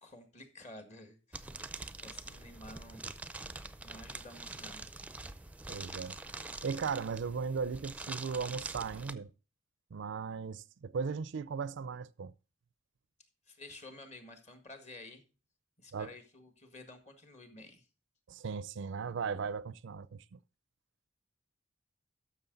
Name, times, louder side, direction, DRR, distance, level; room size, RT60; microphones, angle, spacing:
voice 1, 0.0-1.6 2.0-3.1 3.8-4.9 13.5-15.2 15.8-17.9, left 2 dB, 35° left, 1.7 m, -51 dB
sound 1, 1.3-9.1, right 2 dB, 5° right, 0.5 m, -45 dB
voice 2, 5.7-6.2 6.6-9.3 9.9-12.3 15.9-16.1 18.3-20.4, right 5 dB, 65° right, 0.4 m, -37 dB
12.5 x 6.2 x 3.9 m
head